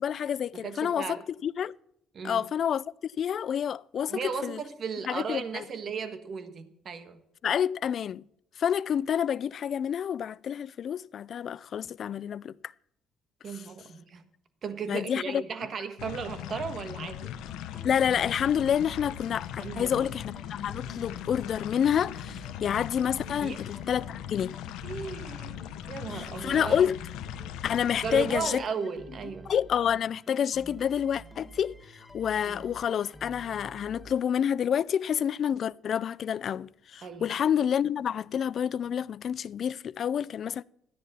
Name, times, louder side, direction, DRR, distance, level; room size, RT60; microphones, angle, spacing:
voice 1, 0.0-1.7 2.2-4.6 5.1-5.6 7.4-8.2 8.6-12.5 14.9-15.4 17.8-24.5 26.1-26.9 27.6-28.6 29.5-40.6, left 8 dB, 55° left, 0.3 m, -28 dB
voice 2, 0.5-1.2 2.1-2.4 4.1-7.2 13.4-14.2 14.6-17.3 17.7-17.9 19.6-20.1 23.3-23.6 24.8-26.9 28.0-29.5 32.5-32.7 37.0-37.3, right 6 dB, 50° right, 1.3 m, -36 dB
sound 1, 16.0-28.4, left 11 dB, 85° left, 0.7 m, -40 dB
sound 2, 17.2-34.8, right 1 dB, 10° left, 1.9 m, -49 dB
14.0 x 10.0 x 4.2 m
supercardioid pair, 80°, 0 cm